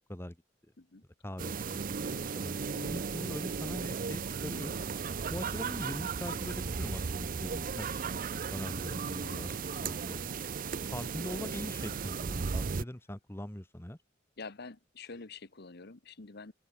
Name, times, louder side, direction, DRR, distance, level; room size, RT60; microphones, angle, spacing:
voice 1, 1.2-4.7 5.3-8.0 8.5-10.4 10.9-14.0, left 1 dB, 15° left, 1.5 m, -42 dB
sound 1, 1.4-12.8, right 5 dB, 45° right, 0.6 m, -36 dB
voice 2, 2.7-3.1 6.2-6.4 9.2-9.5 11.3-11.6 14.4-16.5, left 4 dB, 60° left, 1.3 m, -47 dB
sound 2, 4.5-5.5 6.7-7.4 8.3-9.0 9.6-10.6 12.5-13.3 15.0-15.3, left 6 dB, 40° left, 6.7 m, -71 dB
open air
head